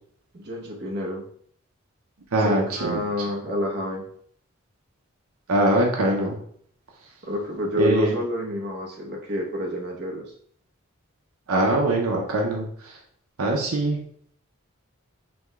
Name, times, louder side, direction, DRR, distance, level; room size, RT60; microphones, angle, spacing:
voice 1, 0.3-1.2 2.4-4.0 7.2-10.2, left 1 dB, 50° right, -2 dB, 1.0 m, -28 dB
voice 2, 2.3-3.0 5.5-6.4 7.8-8.1 11.5-13.0 13.4-14.0, right 1 dB, 85° right, 0 dB, 0.8 m, -22 dB
4.8 x 2.3 x 3.6 m, 0.63 s
head